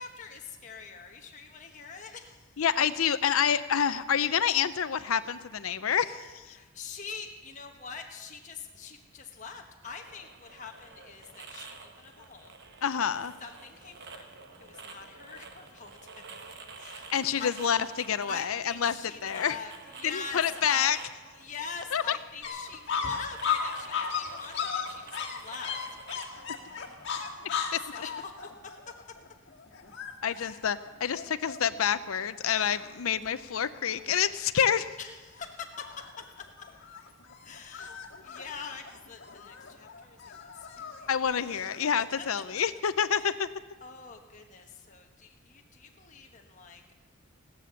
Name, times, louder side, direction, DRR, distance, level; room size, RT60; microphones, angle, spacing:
voice 1, 0.0-2.6 6.5-12.5 13.4-14.3 14.6-17.1 17.4-17.6 18.3-21.1 21.3-25.8 27.7-28.5 30.3-30.7 35.0-36.1 36.4-36.5 37.4-41.2 42.2-42.3 43.1-43.4 43.8-47.0, left 5 dB, 35° left, 2 dB, 1.2 m, -44 dB
voice 2, 2.6-6.6 12.8-13.3 17.1-18.9 19.2-19.6 20.1-21.0 21.9-22.2 27.7-27.8 30.2-34.9 41.1-43.5, left 8 dB, 85° left, 13 dB, 0.6 m, -28 dB
sound 1, 9.8-27.4, right 4 dB, 55° right, 1.2 m, -50 dB
sound 2, 22.4-31.9 32.3-32.4 32.6-33.3 33.6-34.2 34.7-35.0 35.4-41.9, left 6 dB, 55° left, 1.9 m, -36 dB
16.0 x 12.5 x 7.0 m, 1.3 s
head